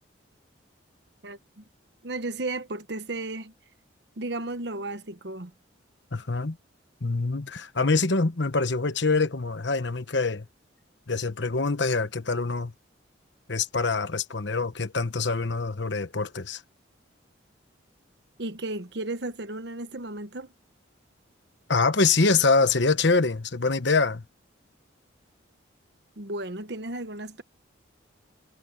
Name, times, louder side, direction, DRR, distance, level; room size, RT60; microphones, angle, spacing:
voice 1, 1.2-1.6 2.0-3.5 4.2-5.5 18.4-20.5 26.2-27.4, right 2 dB, 60° right, 1.1 m, -34 dB
voice 2, 6.1-6.6 7.0-10.5 11.1-12.7 13.5-16.6 21.7-24.2, left 3 dB, 65° left, 1.1 m, -25 dB
head